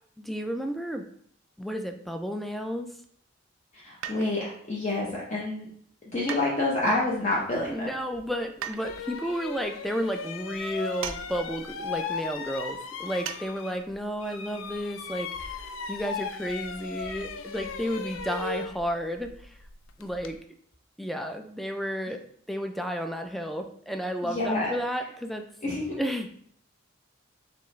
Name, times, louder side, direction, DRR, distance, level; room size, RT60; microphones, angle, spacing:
voice 1, 0.2-1.0 1.6-2.9 7.7-19.6 20.0-20.4 21.0-22.2 22.5-25.5 25.9-26.5, equal, ahead, 5 dB, 0.3 m, -32 dB
voice 2, 3.7-5.7 6.1-7.9 24.2-24.7 25.6-26.0, left 2 dB, 35° left, -5 dB, 0.8 m, -28 dB
sound 1, 4.0-4.6 6.3-7.0 8.6-8.9 11.0-11.2 11.5-11.6 13.2-13.4 13.8-13.9, right 9 dB, 80° right, 0.4 m, -37 dB
sound 2, 8.1-8.3 8.8-13.9 14.2-20.4, left 5 dB, 70° left, 0.4 m, -37 dB
4.4 x 3.2 x 3.1 m, 0.63 s
head